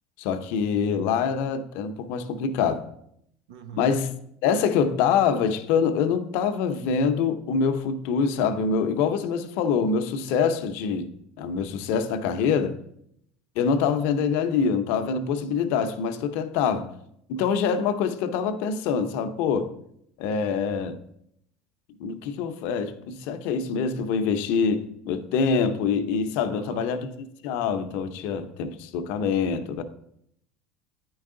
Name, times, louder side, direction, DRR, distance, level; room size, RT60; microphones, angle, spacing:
voice 1, 0.2-2.9 3.8-4.1 4.4-11.1 11.4-12.8 13.6-16.9 17.3-19.7 20.2-21.0 22.0-29.8, left 6 dB, 70° left, 0.7 m, -25 dB
voice 2, 3.5-3.9 26.5-27.0, right 7 dB, 85° right, 0.8 m, -41 dB
9.4 x 4.7 x 3.8 m
supercardioid pair, 100°, 3 cm